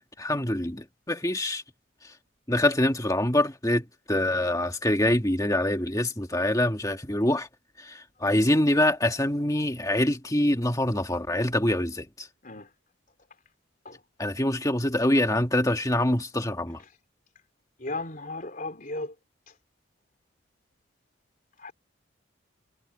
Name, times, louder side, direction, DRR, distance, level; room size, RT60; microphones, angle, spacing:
voice 1, 0.0-1.6 2.5-7.5 7.8-12.3 14.2-16.8, left 1 dB, 15° left, 2.0 m, -25 dB
voice 2, 17.8-19.1 21.6-21.7, left 2 dB, 40° left, 4.0 m, -35 dB
head